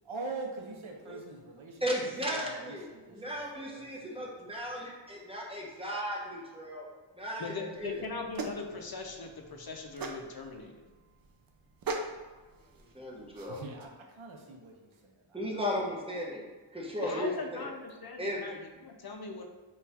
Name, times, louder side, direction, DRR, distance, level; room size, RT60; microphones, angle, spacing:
voice 1, 0.0-4.8 13.5-15.4 16.3-16.4, right 3 dB, 85° right, 1 dB, 0.7 m, -45 dB
voice 2, 1.8-2.8 3.1-6.9 7.2-8.0 12.9-13.6 15.3-16.4 16.7-17.7 18.2-18.4, equal, 10° right, -3 dB, 0.9 m, -35 dB
voice 3, 7.4-10.8 17.0-19.4, left 3 dB, 50° left, 3 dB, 0.5 m, -40 dB
sound 1, 7.8-13.9, right 3 dB, 50° right, 0.5 m, -41 dB
3.9 x 2.4 x 4.1 m, 1.3 s
wide cardioid pair, 60°, 47 cm